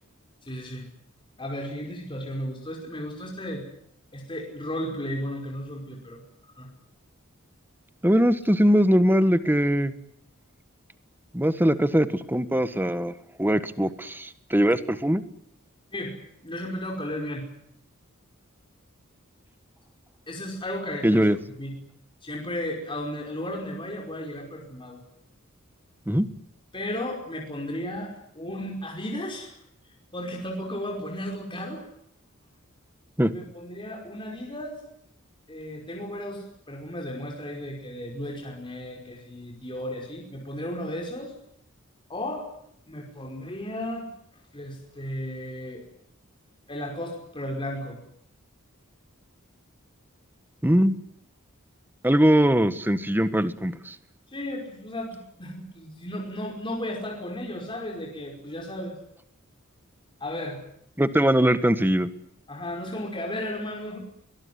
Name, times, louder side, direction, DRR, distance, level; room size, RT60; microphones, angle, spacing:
voice 1, 0.5-0.8 1.4-3.6 4.1-6.2 6.6-6.7 15.9-16.2 16.4-17.5 20.3-21.3 21.6-21.8 22.2-25.0 26.7-29.6 30.1-31.9 33.3-34.8 35.5-41.3 42.1-42.5 42.9-44.1 44.5-45.8 46.7-48.0 54.3-59.0 60.2-60.6 62.5-64.0, left 1 dB, 25° left, 0 dB, 5.3 m, -34 dB
voice 2, 8.0-9.9 11.3-13.1 13.4-15.2 21.0-21.4 26.1-26.3 33.2-33.3 50.6-51.0 52.0-53.9 61.0-62.1, equal, 10° right, 12 dB, 1.5 m, -21 dB
23.0 x 21.5 x 9.7 m, 0.73 s
head